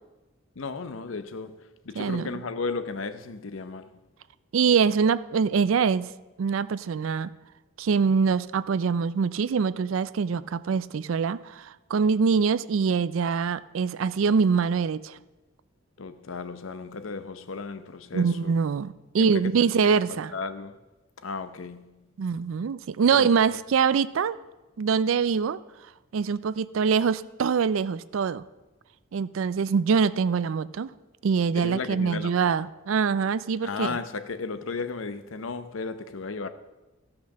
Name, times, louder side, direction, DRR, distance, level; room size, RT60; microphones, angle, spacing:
voice 1, 0.6-4.0 16.0-18.5 19.2-20.8 21.2-21.9 23.1-23.6 31.5-32.5 33.6-36.5, left 4 dB, 70° left, 0.7 m, -35 dB
voice 2, 2.0-2.3 4.5-6.1 6.4-7.3 7.8-15.2 18.1-20.3 22.2-24.4 24.8-25.6 26.1-28.4 29.1-30.9 31.2-34.0, right 6 dB, 70° right, 0.4 m, -24 dB
13.5 x 5.8 x 6.5 m
head